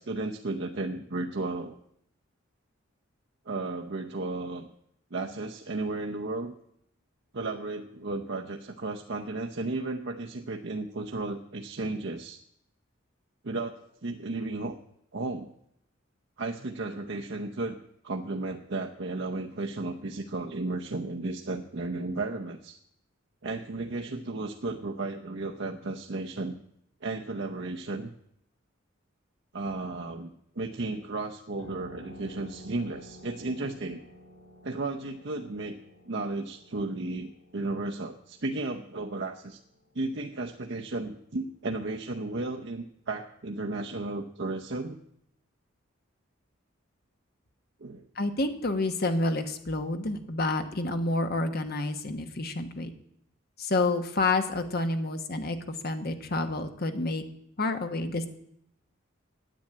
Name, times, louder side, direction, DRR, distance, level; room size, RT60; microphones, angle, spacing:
voice 1, 0.0-1.8 3.5-4.7 5.1-6.5 7.3-12.4 13.4-14.8 15.1-15.5 16.4-17.8 18.0-22.8 23.4-26.5 27.0-28.1 29.5-34.0 34.6-35.8 36.1-39.6 39.9-45.0 47.8-48.0, right 2 dB, 60° right, 2 dB, 0.8 m, -34 dB
sound 1, 31.6-40.8, equal, 90° left, 4.0 m, -51 dB
voice 2, 48.2-52.9 53.6-57.2 57.6-58.3, left 2 dB, 50° left, 7 dB, 1.2 m, -29 dB
10.5 x 8.7 x 8.7 m, 0.73 s
head